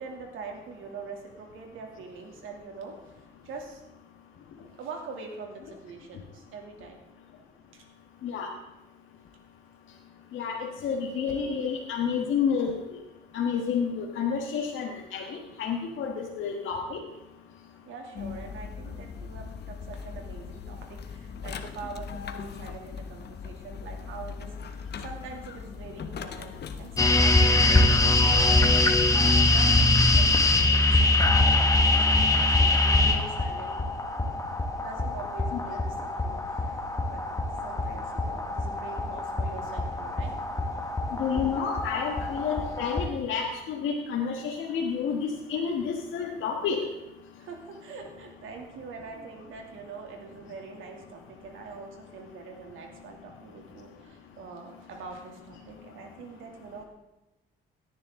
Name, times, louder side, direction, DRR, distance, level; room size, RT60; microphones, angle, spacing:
voice 1, 0.0-3.8 4.7-7.0 7.7-7.8 17.9-33.8 34.8-37.2 37.6-40.3 47.4-56.8, right 4 dB, 85° right, 2 dB, 2.7 m, -43 dB
voice 2, 10.3-12.8 13.3-17.0 35.5-35.6 41.2-46.8, left 6 dB, 80° left, -1 dB, 1.6 m, -30 dB
sound 1, 18.1-30.6, left 6 dB, 55° left, 1.1 m, -39 dB
sound 2, 27.0-43.1, left 2 dB, 15° left, 1.5 m, -23 dB
17.0 x 10.5 x 3.8 m, 1.0 s
cardioid pair, 90°, 20 cm